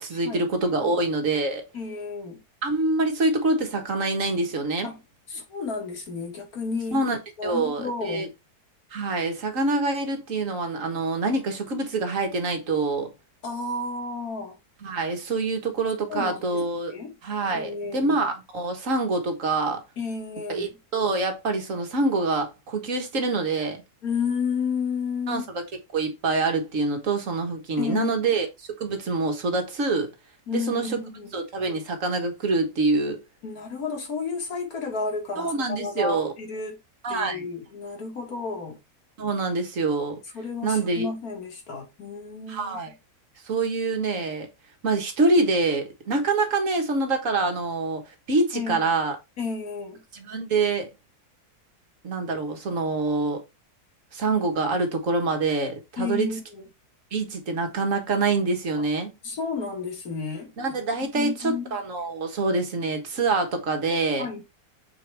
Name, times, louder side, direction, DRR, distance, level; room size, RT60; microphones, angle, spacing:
voice 1, 0.0-1.6 2.6-4.9 6.9-8.3 8.9-13.1 14.8-16.9 17.2-19.8 20.5-23.8 25.3-25.6 25.9-28.5 28.8-30.1 30.5-31.0 31.3-33.2 35.4-36.3 37.0-37.5 39.2-40.2 40.6-41.1 42.5-42.9 43.4-44.5 44.8-49.2 50.1-50.9 52.0-53.4 54.1-56.3 57.1-59.1 60.6-64.3, right 3 dB, 55° right, 1.7 m, -25 dB
voice 2, 1.7-2.4 4.8-5.0 5.3-7.0 7.4-8.3 13.4-14.6 16.1-16.6 16.9-17.1 17.5-18.2 20.0-20.7 24.0-25.5 27.8-28.1 30.5-31.3 33.4-36.8 37.1-38.8 40.3-42.8 48.5-48.9 49.4-50.0 56.0-56.6 58.8-58.9 59.2-60.5 60.8-61.8 64.2-64.4, left 4 dB, 65° left, 2.2 m, -32 dB
6.9 x 4.6 x 3.4 m
omnidirectional pair, 1.7 m